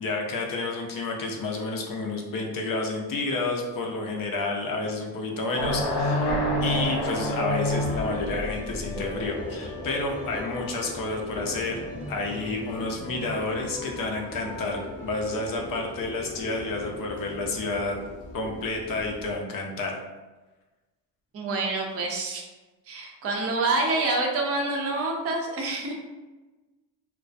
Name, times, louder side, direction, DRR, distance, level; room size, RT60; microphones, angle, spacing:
voice 1, 0.0-6.3 6.6-11.8 12.1-18.0 18.3-20.0, left 3 dB, 45° left, 1 dB, 0.6 m, -30 dB
sound 1, 5.5-8.4, left 1 dB, 85° left, 0.6 m, -26 dB
sound 2, 7.5-19.4, left 2 dB, 15° left, 0.9 m, -38 dB
voice 2, 21.3-22.4 22.9-26.1, right 2 dB, 30° right, 0 dB, 0.5 m, -27 dB
2.3 x 2.1 x 2.5 m, 1.2 s
cardioid pair, 80°, 48 cm